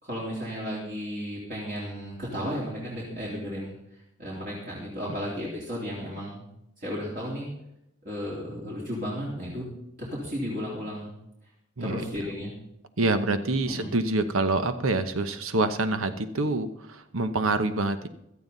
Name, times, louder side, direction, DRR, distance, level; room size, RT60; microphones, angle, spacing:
voice 1, 0.0-3.7 4.2-6.5 6.8-7.5 8.0-9.7 10.0-11.1 11.8-12.5 13.6-13.9, equal, 40° right, -6 dB, 3.5 m, -34 dB
voice 2, 13.0-18.1, right 2 dB, 70° right, 10 dB, 1.0 m, -26 dB
16.5 x 12.5 x 4.0 m, 0.81 s
head